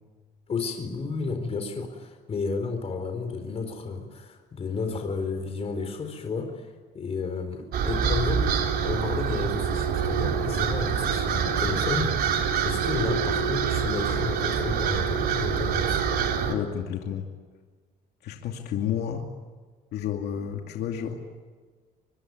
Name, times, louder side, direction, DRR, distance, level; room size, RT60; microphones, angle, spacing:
voice 1, 0.5-8.5 8.8-16.0, left 4 dB, 35° left, 5 dB, 4.3 m, -32 dB
sound 1, 7.7-16.5, right 7 dB, 65° right, 3.7 m, -26 dB
voice 2, 16.4-17.3 18.2-19.3 19.9-21.2, left 9 dB, 75° left, 2 dB, 2.6 m, -31 dB
24.5 x 24.0 x 9.6 m, 1.4 s
cardioid pair, 110°, 17 cm